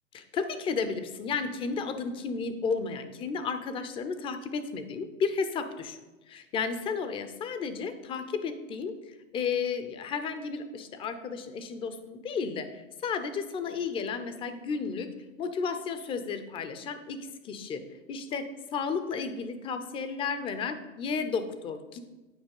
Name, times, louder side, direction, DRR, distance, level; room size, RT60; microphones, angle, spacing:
voice 1, 0.1-6.0 6.3-15.1 15.4-17.8 18.1-22.0, left 5 dB, 15° left, 10 dB, 0.4 m, -33 dB
8.9 x 4.5 x 5.3 m, 1.1 s
hypercardioid pair, 120°, 40 cm